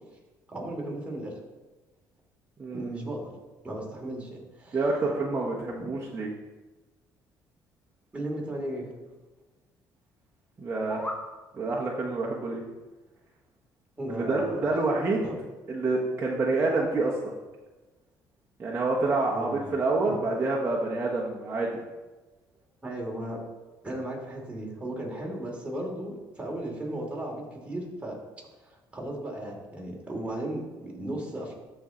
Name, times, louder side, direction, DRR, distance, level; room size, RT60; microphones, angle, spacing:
voice 1, 0.5-1.3 2.7-3.3 3.6-4.9 5.8-5.9 8.1-8.9 14.0-14.8 15.2-15.4 19.3-19.7 20.0-20.2 22.8-23.4 23.8-28.2 28.6-31.5, right 1 dB, 15° right, -2 dB, 2.9 m, -36 dB
voice 2, 2.6-2.9 4.7-6.3 10.6-11.0 11.5-12.6 14.1-15.3 15.7-17.2 18.6-21.8, right 3 dB, 30° right, -4 dB, 1.3 m, -27 dB
sound 1, 10.6-11.3, left 1 dB, 15° left, 1.2 m, -37 dB
13.0 x 4.5 x 3.9 m, 1.2 s
cardioid pair, 85°, 8 cm